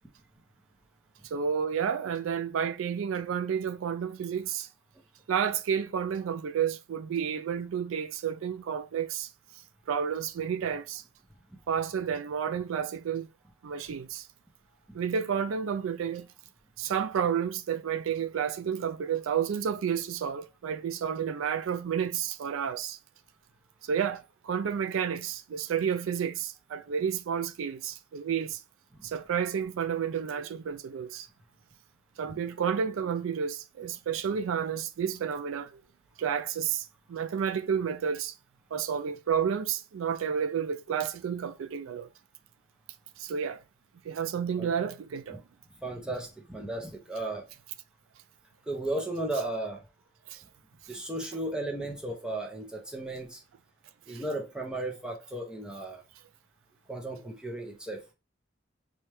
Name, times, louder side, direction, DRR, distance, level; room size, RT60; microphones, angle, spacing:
voice 1, 1.3-4.7 5.3-9.3 9.9-11.0 11.7-13.3 13.6-14.3 14.9-16.3 16.8-23.0 23.8-28.6 29.0-31.3 32.2-35.8 36.2-38.3 38.7-42.1 43.2-43.6 44.0-45.4 50.3-50.4 54.1-54.2, right 7 dB, 90° right, 0.4 m, -31 dB
voice 2, 45.8-47.4 48.7-49.8 50.9-53.4 54.1-56.0 56.9-58.0, right 1 dB, 5° right, 0.7 m, -35 dB
4.2 x 2.3 x 3.1 m
head